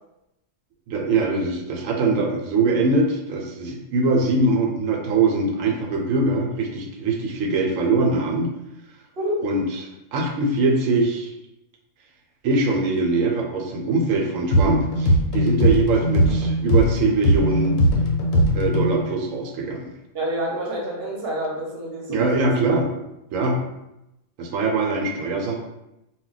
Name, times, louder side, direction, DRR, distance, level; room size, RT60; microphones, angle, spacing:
voice 1, 0.9-8.5 9.4-11.3 12.4-17.7 18.3-19.9 22.1-22.9 23.3-23.6 24.4-25.6, right 3 dB, 85° right, 1 dB, 1.0 m, -22 dB
sound 1, 14.5-19.0, equal, 85° left, 1.0 m, -20 dB
voice 2, 20.1-22.5, right 1 dB, 55° right, -2 dB, 0.8 m, -28 dB
2.2 x 2.1 x 3.8 m, 0.88 s
omnidirectional pair, 1.3 m